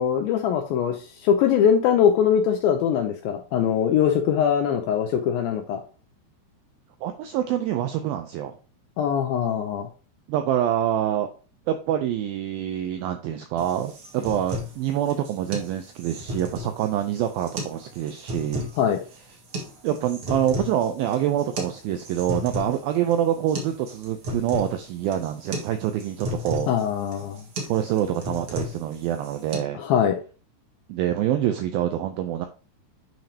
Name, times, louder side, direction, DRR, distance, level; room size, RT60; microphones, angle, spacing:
voice 1, 0.0-5.8 9.0-9.9 18.8-19.0 26.7-27.4 29.8-30.2, left 8 dB, 80° left, 6 dB, 2.1 m, -22 dB
voice 2, 7.0-8.6 10.3-11.3 11.7-18.7 19.8-26.7 27.7-29.8 30.9-32.5, right 11 dB, 85° right, 7 dB, 2.1 m, -26 dB
sound 1, 13.6-29.6, left 1 dB, 55° right, 1.5 m, -35 dB
9.1 x 5.1 x 2.8 m, 0.36 s
omnidirectional pair, 4.9 m